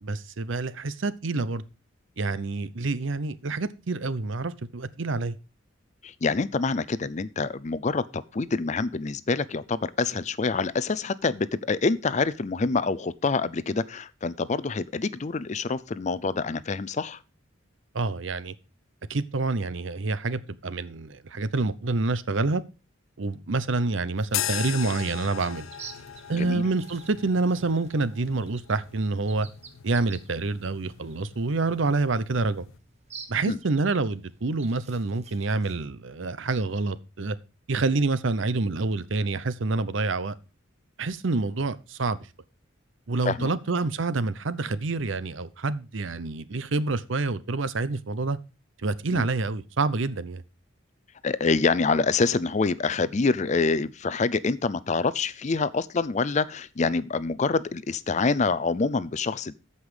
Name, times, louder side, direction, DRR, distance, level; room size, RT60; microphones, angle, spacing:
voice 1, 0.0-1.6 2.2-5.4 17.9-18.5 19.1-22.6 23.2-25.7 26.3-29.5 29.8-32.7 33.3-37.4 37.7-40.3 41.0-42.3 43.1-48.4 48.8-50.4, right 3 dB, 70° right, 0.7 m, -27 dB
voice 2, 6.0-17.2 26.3-26.6 33.5-33.6 43.3-43.5 49.1-49.2 51.2-59.5, left 4 dB, 35° left, 0.5 m, -26 dB
sound 1, 24.2-35.9, right 5 dB, 35° right, 1.3 m, -50 dB
sound 2, 24.3-32.8, left 11 dB, 85° left, 0.5 m, -38 dB
14.0 x 5.5 x 4.9 m
head